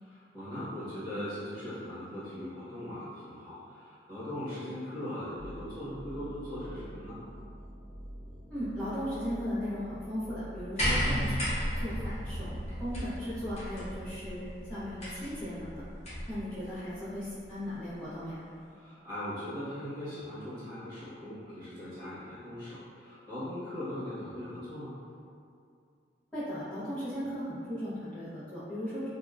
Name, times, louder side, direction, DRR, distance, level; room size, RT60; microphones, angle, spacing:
voice 1, 0.0-7.2 18.7-25.0, left 1 dB, 25° right, -14 dB, 1.2 m, -40 dB
sound 1, 5.4-13.2, equal, 60° right, 0.7 m, -46 dB
voice 2, 8.5-14.4 14.7-15.8 16.3-18.4 26.3-29.1, equal, 5° left, -14 dB, 0.9 m, -37 dB
sound 2, 10.8-16.4 17.5-17.6, equal, 35° left, 0.7 m, -34 dB
2.7 x 2.3 x 2.3 m, 2.4 s
head